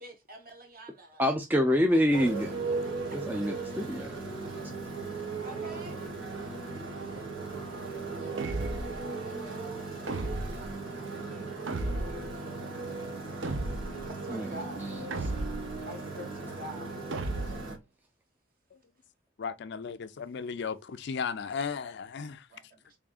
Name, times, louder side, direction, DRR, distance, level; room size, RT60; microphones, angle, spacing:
voice 1, 0.0-1.3 1.9-3.4 5.4-6.0 8.1-8.6 9.2-13.5 14.0-14.9 15.9-17.0 22.5-23.0, right 1 dB, 45° right, 1.2 m, -48 dB
voice 2, 1.2-2.5 3.1-4.1 14.3-14.5 14.8-15.1, equal, 10° right, 0.4 m, -26 dB
Motorcycle, 2.1-17.8, right 3 dB, 85° right, 1.5 m, -37 dB
sound 1, 8.4-9.0 10.1-10.7 11.7-12.3 13.4-14.1 15.1-15.8 17.1-17.7, right 2 dB, 65° right, 0.6 m, -34 dB
voice 3, 19.4-22.5, left 6 dB, 60° left, 0.4 m, -35 dB
3.6 x 3.5 x 2.3 m
head